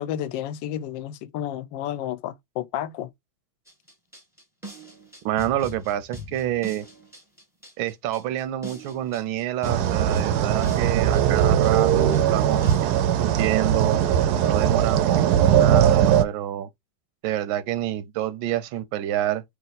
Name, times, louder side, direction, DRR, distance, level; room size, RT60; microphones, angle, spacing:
voice 1, 0.0-3.1, left 11 dB, 80° left, 1.3 m, -31 dB
sound 1, 3.7-13.0, equal, ahead, 1.1 m, -41 dB
voice 2, 5.2-6.9 7.8-12.6 13.2-14.0 14.4-16.7 17.2-19.4, right 13 dB, 90° right, 1.4 m, -27 dB
sound 2, 9.6-16.2, right 9 dB, 75° right, 0.9 m, -20 dB
3.3 x 2.9 x 4.0 m
omnidirectional pair, 2.1 m